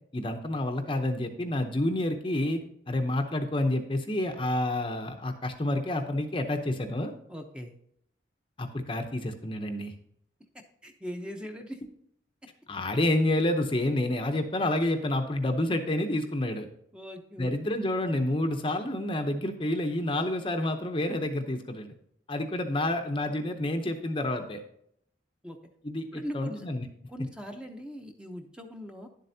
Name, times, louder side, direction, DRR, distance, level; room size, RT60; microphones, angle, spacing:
voice 1, 0.1-7.1 8.6-9.9 12.7-16.7 17.4-21.9 22.3-24.6 25.8-26.8, left 1 dB, 30° left, 6 dB, 0.7 m, -29 dB
voice 2, 7.3-7.7 10.5-11.8 16.9-17.6 25.4-25.6 26.1-26.7 27.1-29.1, equal, 5° right, 4 dB, 0.7 m, -40 dB
10.5 x 7.7 x 2.7 m, 0.70 s
head